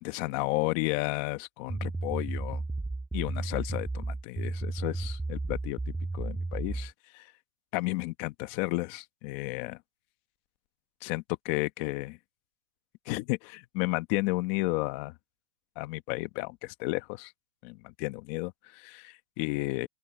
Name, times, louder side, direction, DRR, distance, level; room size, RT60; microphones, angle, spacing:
voice 1, 0.0-2.6 3.1-7.3 7.7-9.8 11.0-12.2 13.1-15.1 15.8-17.3 17.6-19.9, left 22 dB, 35° left, 1.2 m, -32 dB
sound 1, 1.7-6.9, right 2 dB, 5° right, 5.8 m, -33 dB
open air
hypercardioid pair, 160°, 11 cm